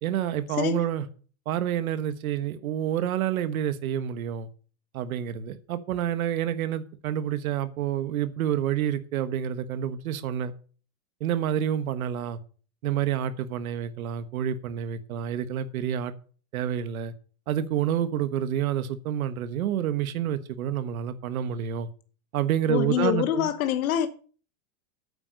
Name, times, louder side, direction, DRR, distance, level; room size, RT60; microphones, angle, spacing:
voice 1, 0.0-1.1 1.4-4.5 4.9-10.5 11.2-12.4 12.8-16.1 16.5-17.1 17.5-21.9 22.3-23.5, right 10 dB, 80° right, 1.4 m, -28 dB
voice 2, 22.7-24.1, left 11 dB, 85° left, 1.2 m, -25 dB
8.9 x 8.3 x 6.4 m
supercardioid pair, 175°, 41 cm